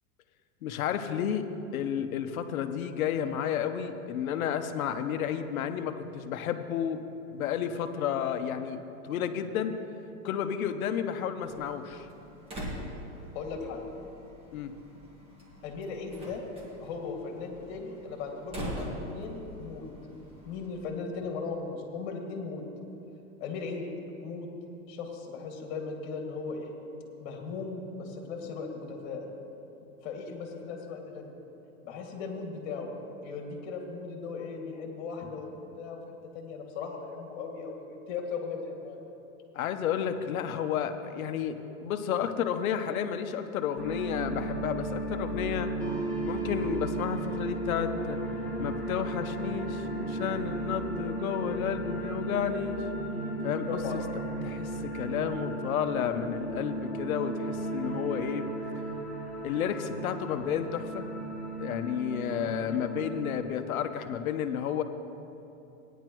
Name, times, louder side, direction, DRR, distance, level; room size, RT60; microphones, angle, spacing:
voice 1, 0.6-1.5 1.7-7.0 7.3-9.8 10.2-12.1 14.5-14.8 39.5-45.7 46.2-48.2 48.6-52.8 53.4-54.0 54.4-58.5 59.4-61.1 61.6-64.8, left 8 dB, 85° left, 8 dB, 0.9 m, -31 dB
Slam, 11.4-20.9, equal, 15° right, 1.7 m, -43 dB
voice 2, 13.3-13.8 15.6-16.4 16.8-19.9 20.4-22.7 23.4-23.9 24.2-24.5 24.9-26.7 27.2-29.3 30.0-31.3 31.8-32.9 33.2-36.0 36.3-39.0 53.7-54.0, left 4 dB, 50° left, 1 dB, 2.1 m, -37 dB
sound 1, 43.8-63.4, right 2 dB, 5° left, 1.3 m, -35 dB
16.5 x 10.0 x 3.1 m, 2.9 s
supercardioid pair, 155°, 41 cm